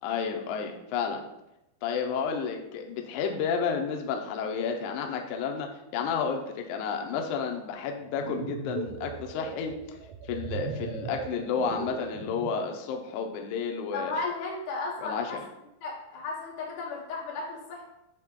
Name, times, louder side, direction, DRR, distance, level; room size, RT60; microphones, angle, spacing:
voice 1, 0.0-1.2 1.8-9.7 10.3-14.1 15.0-15.4, left 6 dB, 85° left, 3 dB, 1.7 m, -31 dB
sound 1, 8.0-12.8, right 6 dB, 80° right, 2.2 m, -39 dB
voice 2, 13.9-15.4 15.8-17.8, left 3 dB, 65° left, -4 dB, 2.9 m, -34 dB
8.0 x 3.3 x 3.6 m, 0.87 s
omnidirectional pair, 4.4 m